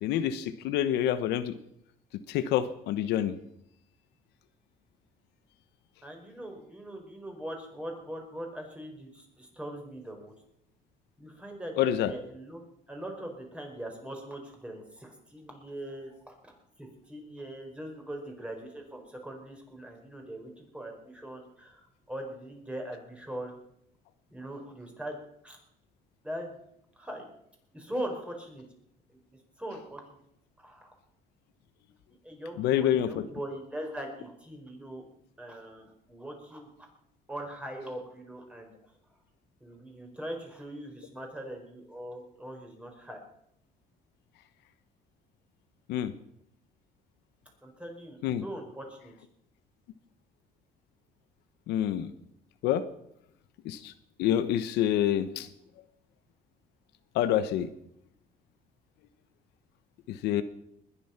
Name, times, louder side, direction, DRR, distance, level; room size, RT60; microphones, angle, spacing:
voice 1, 0.0-1.5 2.3-3.3 11.8-12.1 32.6-33.3 45.9-46.1 48.2-48.4 51.7-52.1 52.6-52.8 53.6-53.9 54.2-55.5 57.1-57.7 60.1-60.4, left 11 dB, 85° left, 12 dB, 1.1 m, -27 dB
voice 2, 6.0-10.3 11.2-12.6 12.9-23.5 24.3-25.2 25.4-25.6 26.2-26.5 27.0-27.3 27.7-28.6 29.3-30.0 30.6-30.9 32.1-35.0 35.4-36.9 37.3-38.7 39.6-43.2 47.6-49.1, right 1 dB, 5° right, 2 dB, 4.8 m, -41 dB
20.5 x 10.5 x 5.9 m, 0.76 s
cardioid pair, 110°, 17 cm